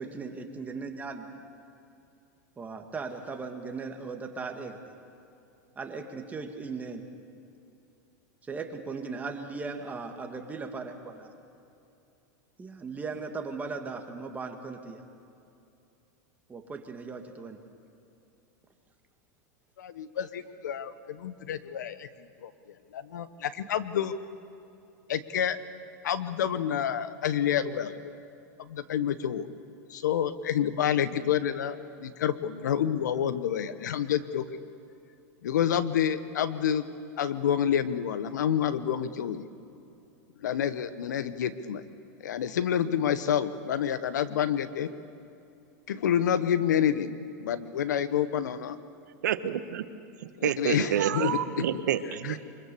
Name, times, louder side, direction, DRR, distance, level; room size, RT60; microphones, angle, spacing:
voice 1, 0.0-1.4 2.6-4.8 5.8-7.0 8.4-11.3 12.6-15.0 16.5-17.6 20.2-20.3, right 4 dB, 15° right, 4 dB, 2.0 m, -38 dB
voice 2, 19.8-22.1 22.4-22.5 22.9-24.2 25.1-25.6 26.0-28.1 28.6-29.5 29.9-34.4 35.4-36.8 37.2-39.4 40.4-41.8 42.2-44.9 45.9-47.1 47.4-48.8 50.4-51.4 52.2-52.4, left 9 dB, 85° left, 13 dB, 1.1 m, -28 dB
voice 3, 49.2-49.9 50.4-52.4, right 10 dB, 80° right, 11 dB, 1.2 m, -28 dB
24.0 x 22.0 x 6.9 m, 2.7 s
hypercardioid pair, 120°, 9 cm